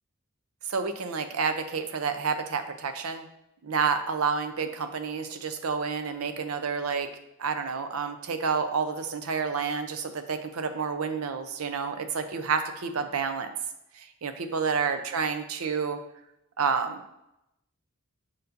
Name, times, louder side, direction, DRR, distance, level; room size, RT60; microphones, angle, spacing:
voice 1, 0.7-3.2 3.6-7.1 7.4-13.5 14.0-16.0 16.6-17.0, right 5 dB, 85° right, 8 dB, 0.6 m, -29 dB
6.8 x 5.4 x 2.6 m, 0.86 s
head